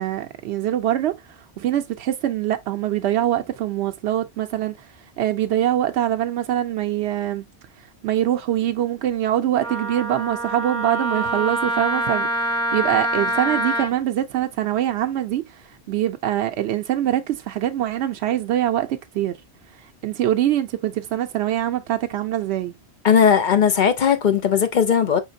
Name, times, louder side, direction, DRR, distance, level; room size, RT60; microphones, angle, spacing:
voice 1, 0.0-4.9 5.2-7.4 7.8-19.4 20.0-22.7, right 12 dB, 80° right, 0.9 m, -24 dB
Wind instrument woodwind instrument, 9.6-13.9, right 1 dB, 5° left, 0.9 m, -25 dB
voice 2, 23.0-25.2, left 7 dB, 50° left, 0.7 m, -17 dB
4.9 x 3.8 x 2.6 m
omnidirectional pair, 1.1 m